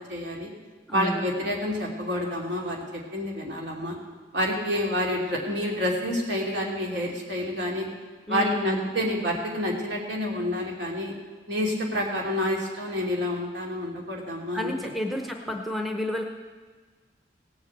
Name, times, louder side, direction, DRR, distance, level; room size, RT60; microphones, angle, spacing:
voice 1, 0.1-0.5 0.9-4.0 4.3-7.9 8.3-11.1 11.5-14.7, left 1 dB, 65° right, -1 dB, 2.8 m, -28 dB
voice 2, 0.9-1.2 8.3-8.9 14.5-16.2, left 1 dB, ahead, 3 dB, 0.8 m, -30 dB
17.5 x 7.4 x 7.7 m, 1.4 s
head